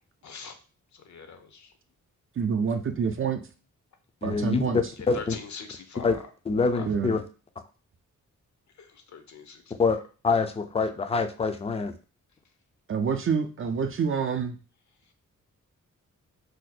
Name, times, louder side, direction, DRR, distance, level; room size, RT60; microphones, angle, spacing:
voice 1, 0.2-0.6 0.9-1.7 5.1-6.3 6.7-6.9 8.8-9.7, left 5 dB, 65° left, 7 dB, 0.6 m, -42 dB
voice 2, 2.4-3.4 4.2-4.8 6.8-7.1 12.9-14.6, right 6 dB, 45° right, 6 dB, 0.4 m, -27 dB
voice 3, 4.2-5.4 6.0-6.2 6.5-7.2 9.8-10.0 10.2-11.9, left 4 dB, 20° left, 8 dB, 0.4 m, -25 dB
2.7 x 2.1 x 4.0 m, 0.35 s
cardioid pair, 85°, 31 cm